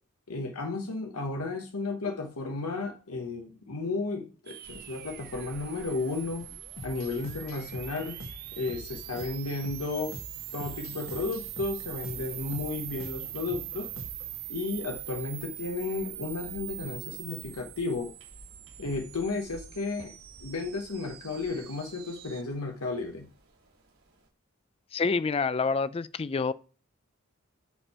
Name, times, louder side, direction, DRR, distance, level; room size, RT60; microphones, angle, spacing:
voice 1, 0.3-6.5 6.8-8.2 8.5-10.2 10.5-13.9 14.5-18.1 18.8-20.1 20.4-23.3, left 3 dB, 85° left, 1.0 m, -33 dB
sound 1, 4.5-22.4, right 14 dB, 45° right, 0.5 m, -43 dB
sound 2, 4.6-24.3, right 1 dB, 80° right, 3.3 m, -55 dB
Sicily House Extra, 6.8-14.4, left 2 dB, 70° left, 1.5 m, -45 dB
voice 2, 24.9-26.5, left 4 dB, 25° left, 0.3 m, -27 dB
10.0 x 4.5 x 4.2 m
head